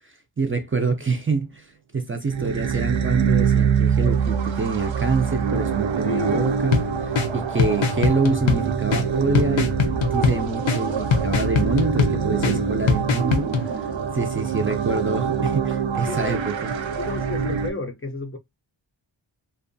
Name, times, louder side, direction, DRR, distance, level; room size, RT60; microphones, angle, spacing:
voice 1, 0.4-1.7 1.9-16.7, right 4 dB, 30° right, 0.4 m, -26 dB
sound 1, 2.3-17.7, right 7 dB, 80° right, 0.6 m, -25 dB
voice 2, 6.0-6.5 12.4-12.7 16.1-16.4 17.0-18.4, left 3 dB, 30° left, 0.4 m, -32 dB
sound 2, 6.7-13.7, left 5 dB, 85° left, 0.6 m, -24 dB
2.6 x 2.2 x 2.5 m
wide cardioid pair, 75°, 46 cm